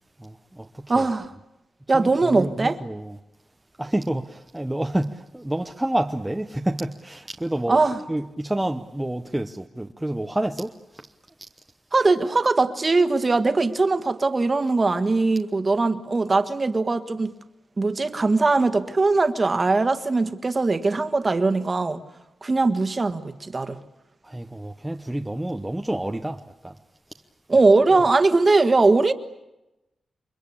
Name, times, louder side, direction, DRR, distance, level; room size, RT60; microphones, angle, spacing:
voice 1, 0.2-1.1 1.9-3.2 3.8-7.8 8.1-11.1 24.2-26.8, right 1 dB, 10° right, 0.9 m, -29 dB
voice 2, 0.9-1.3 1.9-2.8 7.7-8.0 11.9-17.3 17.8-22.0 22.4-23.8 27.5-29.1, right 3 dB, 30° right, 1.6 m, -20 dB
29.0 x 24.0 x 8.6 m
wide cardioid pair, 140°, 0 cm